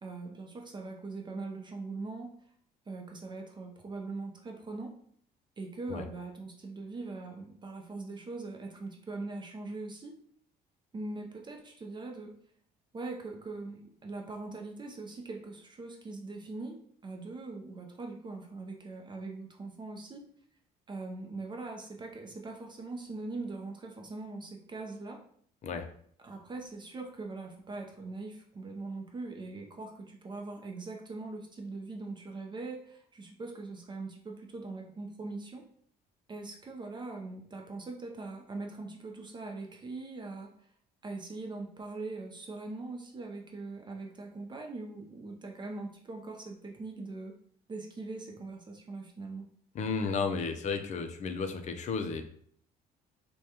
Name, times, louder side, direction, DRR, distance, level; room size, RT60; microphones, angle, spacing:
voice 1, 0.0-2.3 2.9-4.9 5.6-10.2 10.9-12.3 12.9-16.8 17.0-20.3 20.9-25.2 26.2-35.6 36.3-40.5 41.0-47.3 47.7-49.5, right 3 dB, 25° right, 2 dB, 0.5 m, -41 dB
voice 2, 49.7-52.2, left 5 dB, 45° left, 7 dB, 0.5 m, -33 dB
4.8 x 2.2 x 2.8 m, 0.62 s
cardioid pair, 110°, 17 cm